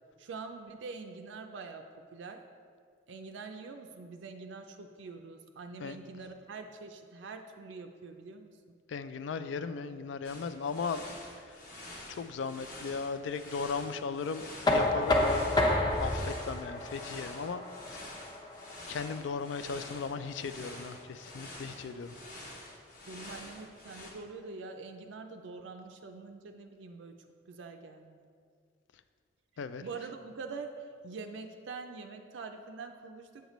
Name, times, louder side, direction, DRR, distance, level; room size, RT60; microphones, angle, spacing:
voice 1, 0.2-1.9 2.1-2.4 3.1-8.5 23.1-27.2 27.5-28.3 29.8-30.7 31.0-33.5, right 4 dB, 80° right, 4 dB, 0.4 m, -44 dB
voice 2, 8.9-11.0 12.1-14.4 14.7-15.6 16.0-17.6 17.9-18.1 18.9-22.1 29.6-29.8, left 5 dB, 75° left, 11 dB, 0.3 m, -37 dB
sound 1, 10.2-24.1, left 1 dB, 45° left, 1.0 m, -48 dB
Knock, 14.7-20.5, left 1 dB, 20° left, 0.6 m, -31 dB
8.1 x 6.5 x 3.1 m, 2.1 s
head